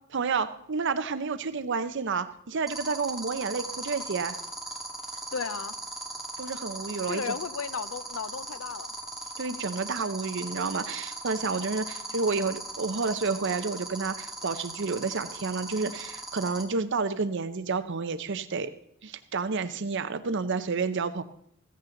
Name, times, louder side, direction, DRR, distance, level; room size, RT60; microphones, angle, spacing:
voice 1, 0.1-4.4 6.4-7.3 9.4-18.7 19.0-21.2, right 4 dB, 60° right, 11 dB, 0.7 m, -30 dB
sound 1, 2.7-16.6, right 1 dB, ahead, 2.2 m, -37 dB
voice 2, 5.3-5.8 7.1-8.9, left 6 dB, 85° left, 15 dB, 0.7 m, -34 dB
15.5 x 15.0 x 3.9 m, 0.69 s
head